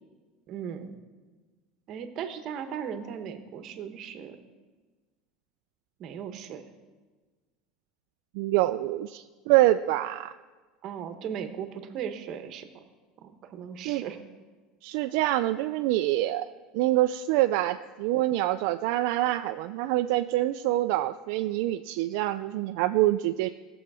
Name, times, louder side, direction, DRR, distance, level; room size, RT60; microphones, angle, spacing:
voice 1, 0.5-1.0 1.9-4.4 6.0-6.6 10.8-12.7 13.2-14.2, right 8 dB, 40° right, 8 dB, 1.1 m, -37 dB
voice 2, 8.4-10.3 13.9-14.0 14.8-16.5 16.7-23.5, right 15 dB, 65° right, 8 dB, 0.3 m, -25 dB
17.0 x 7.1 x 4.9 m, 1.3 s
cardioid pair, 155°, 0 cm